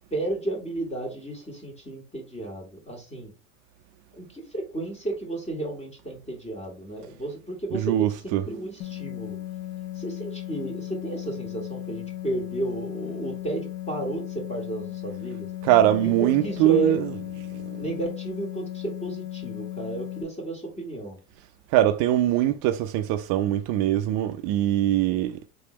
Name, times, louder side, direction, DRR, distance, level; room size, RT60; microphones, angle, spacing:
voice 1, 0.1-3.3 4.1-9.4 9.9-15.5 16.0-17.0 17.8-21.2, right 2 dB, 15° left, 1.5 m, -33 dB
voice 2, 7.7-8.5 15.6-17.3 17.7-17.9 21.7-25.4, right 13 dB, 50° right, 0.5 m, -22 dB
sound 1, 8.8-20.2, left 14 dB, 70° left, 1.0 m, -36 dB
3.9 x 3.3 x 3.1 m
supercardioid pair, 105°, 41 cm